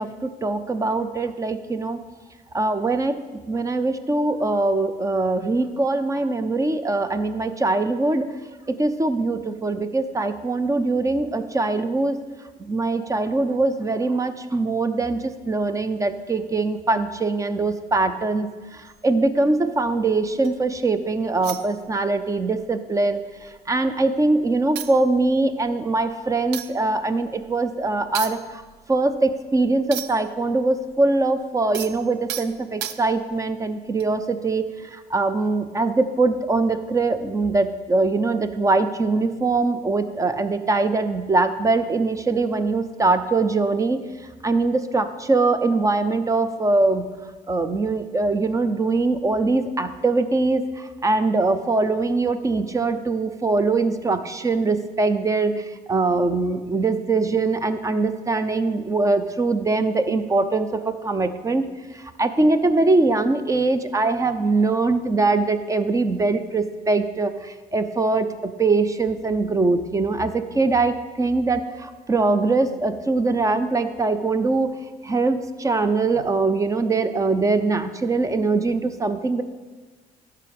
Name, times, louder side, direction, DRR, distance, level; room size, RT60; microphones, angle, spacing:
voice 1, 0.0-2.0 2.5-3.2 3.5-8.3 8.7-12.2 12.7-28.6 28.9-44.0 44.4-47.0 47.5-61.6 61.9-74.7 75.0-79.4, right 3 dB, 20° right, 11 dB, 0.6 m, -22 dB
sound 1, 18.9-20.7 21.4-22.3 22.6-22.8 23.1-24.0 24.4-24.5 24.8-30.4 30.6-33.4 34.0-34.2, right 11 dB, 85° right, 0.5 m, -36 dB
12.5 x 4.8 x 5.3 m, 1.3 s
cardioid pair, 110°, 17 cm